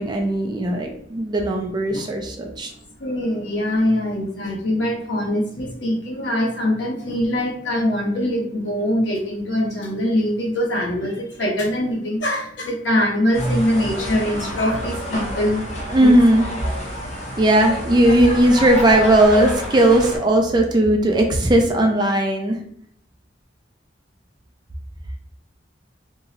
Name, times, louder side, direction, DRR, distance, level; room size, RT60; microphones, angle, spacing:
voice 1, 0.0-2.7 15.9-16.5 17.4-22.6, right 1 dB, 25° right, 3 dB, 0.4 m, -17 dB
voice 2, 3.0-15.6 16.0-16.1, left 1 dB, 75° left, -1 dB, 0.9 m, -23 dB
sound 1, 13.3-20.2, equal, 35° left, 0.7 m, -29 dB
2.7 x 2.0 x 3.7 m, 0.67 s
head